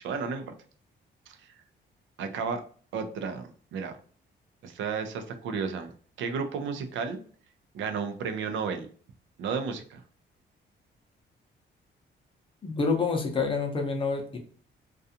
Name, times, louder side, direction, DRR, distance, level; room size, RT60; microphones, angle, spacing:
voice 1, 0.0-0.4 1.3-1.5 2.2-2.6 2.9-4.0 4.6-5.9 6.2-7.2 7.7-8.9 9.4-10.0, right 5 dB, 85° right, 7 dB, 0.5 m, -32 dB
voice 2, 12.6-14.4, left 4 dB, 25° left, 3 dB, 0.6 m, -27 dB
2.4 x 2.3 x 2.7 m, 0.44 s
cardioid pair, 160°, 19 cm